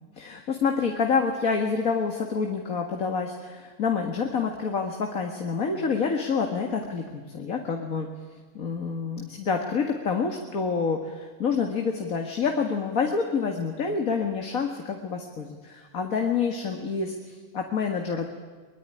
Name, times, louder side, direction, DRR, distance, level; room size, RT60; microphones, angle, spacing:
voice 1, 0.2-8.1 8.5-18.3, left 5 dB, 70° left, 3 dB, 2.2 m, -27 dB
23.5 x 22.0 x 9.9 m, 1.4 s
omnidirectional pair, 1.5 m